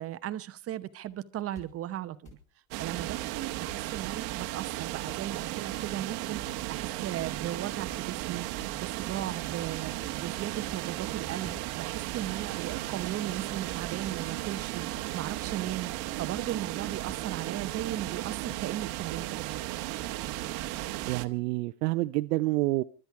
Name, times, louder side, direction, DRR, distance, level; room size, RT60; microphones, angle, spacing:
voice 1, 0.0-2.4 2.8-19.6, right 12 dB, 30° right, 0.9 m, -37 dB
sound 1, 1.6-1.7 2.3-2.4 3.0-3.1 3.4-3.8 4.4-4.6 4.9-5.2 5.6-5.9 6.3-6.6 7.2-7.5 7.9-8.2 8.6-8.9 9.3-9.4 9.8-10.1 10.6-11.0 11.4-11.6 12.1-12.3 12.6-13.0 13.5-13.7 14.2-14.3 14.9-15.2 15.6-15.9 16.3-16.5 17.1-17.2 17.8-17.9 18.5-18.6, left 4 dB, 15° left, 5.5 m, -50 dB
sound 2, 2.7-21.3, right 16 dB, 50° right, 1.2 m, -35 dB
voice 2, 21.1-22.8, right 20 dB, 80° right, 0.8 m, -28 dB
24.0 x 12.5 x 4.7 m
supercardioid pair, 140°, 47 cm